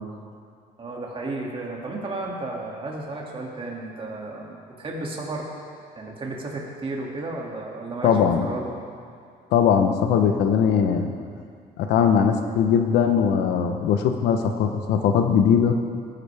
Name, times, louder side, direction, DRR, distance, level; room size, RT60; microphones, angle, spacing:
voice 1, 0.8-5.5 6.0-8.1 8.4-8.7, right 2 dB, 30° right, -2 dB, 2.4 m, -33 dB
voice 2, 8.0-8.5 9.5-11.1 11.8-15.8, left 7 dB, 80° left, 6 dB, 1.0 m, -20 dB
18.5 x 10.5 x 3.5 m, 2.3 s
cardioid pair, 110°, 17 cm